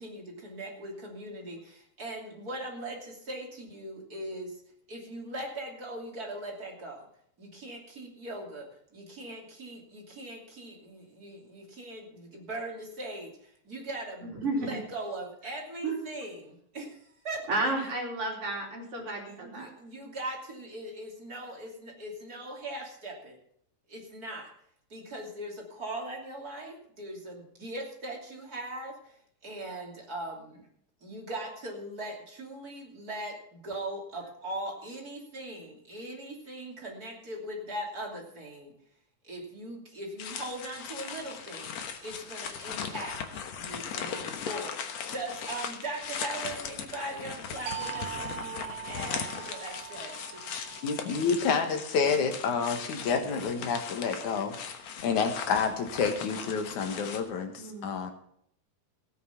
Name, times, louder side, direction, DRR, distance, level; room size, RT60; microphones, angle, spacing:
voice 1, 0.0-4.6 4.9-7.1 7.4-17.7 19.3-23.4 23.9-24.5 24.9-30.6 31.0-38.7 39.2-41.7 42.0-43.2 43.5-44.7 45.1-50.5, right 1 dB, 30° right, -1 dB, 3.2 m, -40 dB
voice 2, 14.2-14.8 15.8-16.0 17.5-19.7 57.6-57.9, right 2 dB, 50° right, -1 dB, 4.1 m, -32 dB
sound 1, 40.2-57.2, left 7 dB, 65° left, 2.3 m, -39 dB
sound 2, 47.7-53.0, right 10 dB, 85° right, 2.7 m, -42 dB
voice 3, 50.8-54.6 55.0-58.1, left 5 dB, 85° left, 6 dB, 2.9 m, -29 dB
16.0 x 9.2 x 5.8 m, 0.68 s
omnidirectional pair, 3.3 m